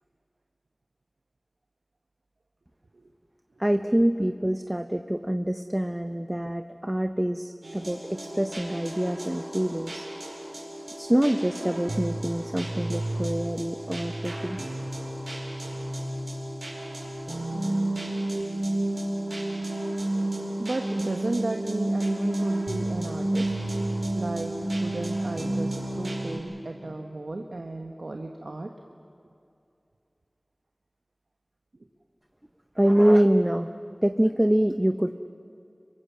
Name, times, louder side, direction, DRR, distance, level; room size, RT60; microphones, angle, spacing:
voice 1, 3.6-10.1 11.0-14.7 32.8-33.7 34.0-35.1, right 1 dB, 15° right, 8 dB, 0.7 m, -25 dB
sound 1, 7.6-26.4, right 1 dB, 60° right, 5.4 m, -31 dB
voice 2, 20.6-23.5 24.1-28.7 31.7-31.9, right 2 dB, 80° right, 3 dB, 1.2 m, -34 dB
26.0 x 23.5 x 7.4 m, 2.6 s
wide cardioid pair, 55°, 0 cm